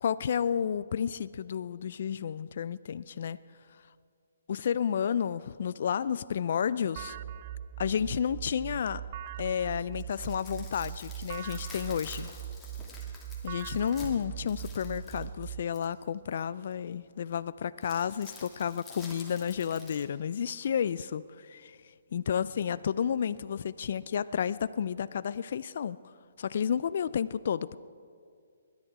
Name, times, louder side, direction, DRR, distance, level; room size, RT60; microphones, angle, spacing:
voice 1, 0.0-3.4 4.5-7.2 7.8-9.0 9.4-12.3 13.4-21.8 22.1-26.0 26.4-27.7, left 8 dB, 60° left, 16 dB, 0.3 m, -31 dB
sound 1, 7.0-15.6, right 10 dB, 40° right, 0.3 m, -40 dB
sound 2, 9.8-16.0 17.8-20.0, left 3 dB, 10° left, 2.3 m, -49 dB
21.0 x 10.5 x 4.8 m, 2.2 s
hypercardioid pair, 150°, 0 cm